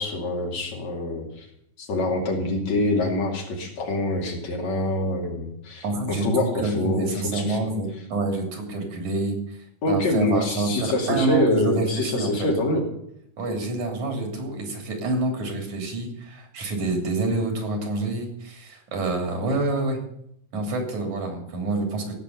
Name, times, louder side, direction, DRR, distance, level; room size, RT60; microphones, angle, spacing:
voice 1, 0.0-1.5 1.8-7.7 9.8-12.8, left 2 dB, 65° left, 0 dB, 3.8 m, -25 dB
voice 2, 5.8-9.6 9.9-12.5 13.4-20.0 20.5-22.1, right 2 dB, 75° right, 3 dB, 4.5 m, -27 dB
17.0 x 7.2 x 8.2 m, 0.73 s
omnidirectional pair, 3.4 m